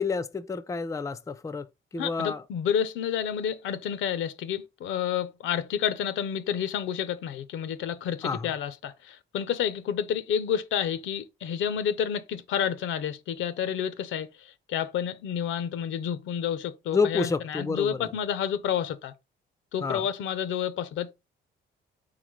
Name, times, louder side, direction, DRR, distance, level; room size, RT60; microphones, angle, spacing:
voice 1, 0.0-1.7 1.9-2.4 8.2-8.5 16.9-18.1 19.8-20.1, left 4 dB, 15° left, 0.4 m, -29 dB
voice 2, 2.0-19.1 19.7-21.1, left 8 dB, 75° left, 0.6 m, -30 dB
4.1 x 3.8 x 3.1 m
cardioid pair, 90°, 20 cm